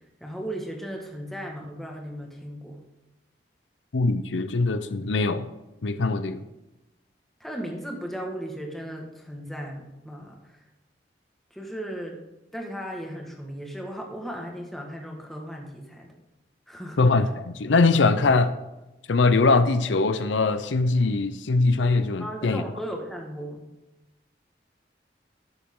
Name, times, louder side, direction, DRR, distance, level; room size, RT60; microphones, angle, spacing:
voice 1, 0.2-2.8 7.4-10.4 11.5-12.2 12.5-16.1 16.7-17.3 22.2-23.6, equal, ahead, 0 dB, 1.6 m, -36 dB
voice 2, 3.9-5.5 5.8-6.4 17.0-18.5 19.1-22.6, left 3 dB, 90° left, 11 dB, 0.6 m, -22 dB
12.5 x 7.1 x 3.7 m, 0.99 s
head